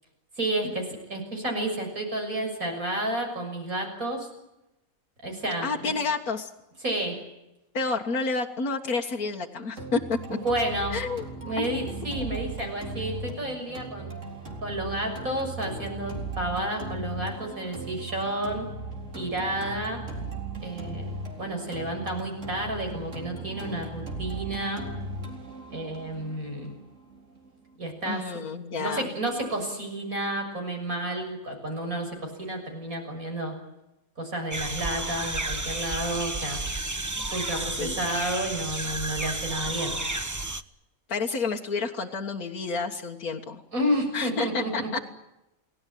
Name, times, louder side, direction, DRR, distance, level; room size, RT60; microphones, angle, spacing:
voice 1, 0.4-4.3 5.2-5.9 6.8-7.2 10.4-11.0 11.5-14.1 14.6-18.7 19.1-20.0 20.6-21.1 21.4-24.8 25.7-26.7 27.8-28.3 28.8-33.5 34.2-36.6 37.3-40.0 43.7-44.9, right 1 dB, 70° right, 3 dB, 7.2 m, -31 dB
voice 2, 5.6-6.5 7.7-10.4 10.9-11.3 11.6-12.0 15.3-15.4 28.1-29.1 37.2-37.3 37.5-38.0 41.1-43.6 44.1-45.1, left 4 dB, 85° left, 0 dB, 2.1 m, -30 dB
sound 1, 9.8-27.7, right 2 dB, 55° right, 4.5 m, -38 dB
sound 2, 34.5-40.6, right 2 dB, 15° right, 0.8 m, -32 dB
30.0 x 19.0 x 9.3 m, 0.91 s
omnidirectional pair, 1.5 m